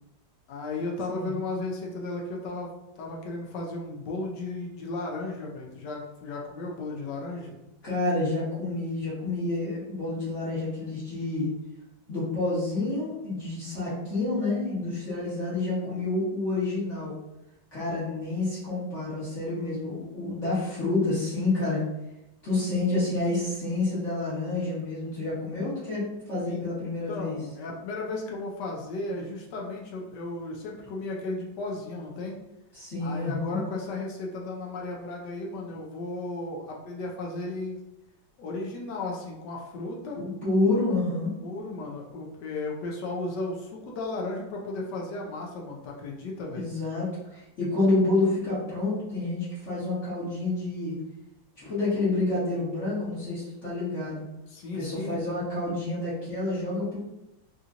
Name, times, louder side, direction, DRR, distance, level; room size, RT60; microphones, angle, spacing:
voice 1, 0.5-7.5 15.8-16.1 26.4-26.6 27.1-32.4 33.0-37.8 38.4-40.2 41.4-46.7 54.5-55.2, left 2 dB, 70° left, -1 dB, 1.2 m, -35 dB
voice 2, 7.8-11.5 12.1-17.1 17.7-21.8 22.4-27.4 32.7-33.6 40.4-41.4 46.5-51.0 51.6-54.2 54.7-57.0, left 2 dB, 40° left, -11 dB, 1.4 m, -28 dB
3.8 x 2.8 x 2.5 m, 0.91 s
omnidirectional pair, 2.1 m